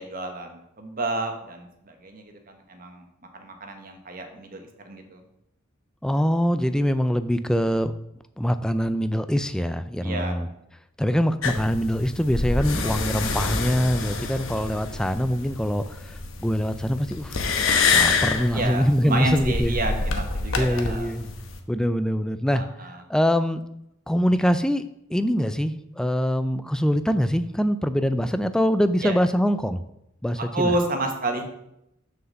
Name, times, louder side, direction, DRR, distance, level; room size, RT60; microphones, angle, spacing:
voice 1, 0.0-3.1 3.3-5.2 10.0-10.3 18.5-21.1 22.5-23.0 29.0-29.2 30.5-31.5, right 2 dB, 45° right, 4 dB, 1.2 m, -30 dB
voice 2, 6.0-7.9 8.4-10.5 11.0-17.5 17.9-19.7 20.6-21.3 21.7-22.6 23.1-23.6 24.1-24.8 25.1-29.8 30.2-30.7, equal, 5° left, 11 dB, 0.3 m, -23 dB
sound 1, 11.4-21.6, left 4 dB, 85° left, 0.9 m, -27 dB
6.5 x 4.7 x 6.3 m, 0.81 s
head